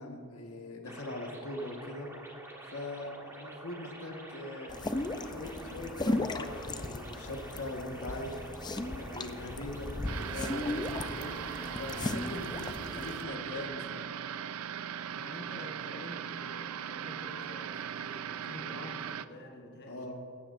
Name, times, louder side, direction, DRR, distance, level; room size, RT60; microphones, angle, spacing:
voice 1, 0.0-2.1 2.6-4.8 5.2-8.4 8.9-11.3 11.8-14.1 19.9-20.2, left 1 dB, 85° left, 2 dB, 1.6 m, -41 dB
sound 1, 0.9-12.5, right 1 dB, 15° right, 1.5 m, -48 dB
sound 2, 4.7-13.2, left 2 dB, 20° left, 0.5 m, -36 dB
sound 3, 10.1-19.3, right 9 dB, 75° right, 0.4 m, -39 dB
voice 2, 15.1-20.1, left 1 dB, 50° left, 1 dB, 1.3 m, -47 dB
16.5 x 15.0 x 2.6 m, 2.7 s
head